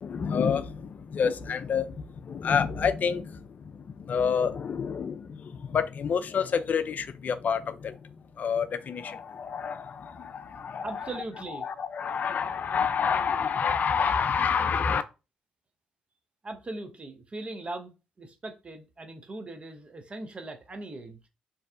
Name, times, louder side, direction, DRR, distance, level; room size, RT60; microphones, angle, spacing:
voice 1, 0.0-11.1 11.6-15.0, left 6 dB, 50° left, 0.3 m, -28 dB
voice 2, 10.8-11.7 16.4-21.2, right 2 dB, 35° right, 0.6 m, -39 dB
2.6 x 2.1 x 2.4 m
hypercardioid pair, 45°, 4 cm